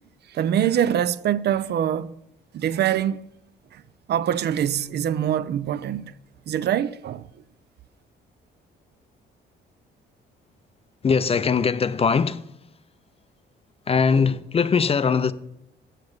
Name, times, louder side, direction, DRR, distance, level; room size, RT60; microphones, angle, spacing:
voice 1, 0.3-2.1 2.5-3.2 3.7-3.8 4.1-6.1 6.5-7.3, right 10 dB, 55° right, 0.4 m, -24 dB
voice 2, 11.0-12.6 13.9-15.3, left 5 dB, 30° left, 0.4 m, -21 dB
7.2 x 6.6 x 6.4 m
cardioid pair, 90°, 20 cm